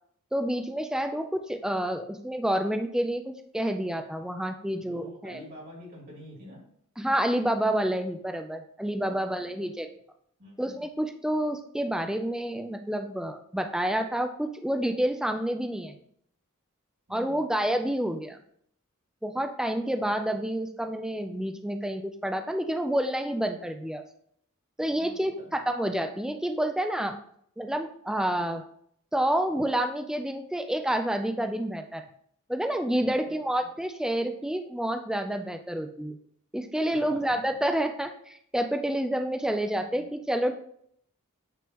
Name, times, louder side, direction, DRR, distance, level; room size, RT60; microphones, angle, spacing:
voice 1, 0.3-5.4 7.0-9.9 10.6-16.0 17.1-18.4 19.2-24.0 24.8-27.2 27.6-28.6 29.1-32.0 32.5-36.2 36.5-40.5, right 1 dB, 5° right, 6 dB, 0.3 m, -29 dB
voice 2, 4.8-6.6 9.0-9.7 10.4-10.9 17.1-17.5 24.9-25.5 32.9-33.7 36.9-37.6 39.7-40.1, left 1 dB, 45° right, -3 dB, 2.5 m, -48 dB
9.1 x 3.5 x 2.9 m, 0.66 s
head